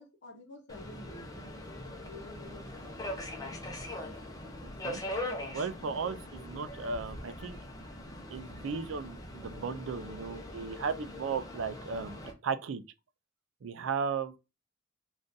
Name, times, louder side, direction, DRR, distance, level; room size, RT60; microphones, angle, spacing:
voice 1, 0.0-3.3 6.1-6.3, left 1 dB, 55° left, 0.8 m, -51 dB
Subway metro underground, 0.7-12.3, left 1 dB, 20° left, 0.7 m, -41 dB
voice 2, 5.5-7.6 8.3-12.8 13.6-14.3, right 5 dB, 70° right, 0.4 m, -35 dB
3.7 x 2.5 x 2.6 m
head